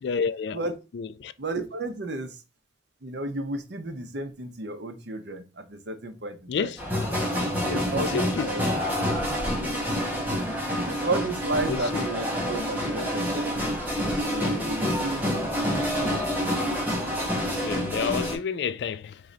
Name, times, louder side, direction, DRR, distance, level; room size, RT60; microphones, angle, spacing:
voice 1, 0.0-0.6 0.9-1.3 6.5-6.8 7.7-8.5 11.7-12.0 14.4-14.5 17.6-19.2, left 6 dB, 65° left, 0.3 m, -30 dB
voice 2, 1.4-2.4 3.0-6.7 7.6-8.6 9.3-9.8 10.5-13.6 14.2-16.2, right 2 dB, 70° right, 0.8 m, -33 dB
sound 1, 6.8-18.3, equal, 10° right, 1.3 m, -27 dB
3.8 x 3.1 x 3.9 m
head